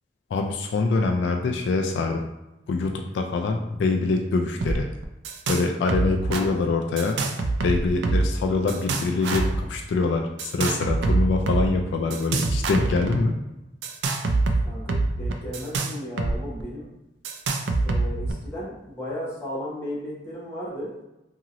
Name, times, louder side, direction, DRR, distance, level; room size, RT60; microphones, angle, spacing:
voice 1, 0.3-2.3 2.7-4.9 5.5-7.2 7.6-13.4, left 3 dB, 75° left, 3 dB, 0.3 m, -24 dB
sound 1, 4.6-4.8 5.0-5.6 5.9-6.4 7.0-8.4 8.7-9.6 10.4-11.6 12.1-13.2 13.8-16.3 16.6-16.7 17.2-18.3, right 3 dB, 70° right, 0.3 m, -25 dB
voice 2, 6.2-6.6 14.6-16.9 17.8-20.9, left 1 dB, 15° left, -7 dB, 0.9 m, -35 dB
2.9 x 2.8 x 2.5 m, 0.95 s
head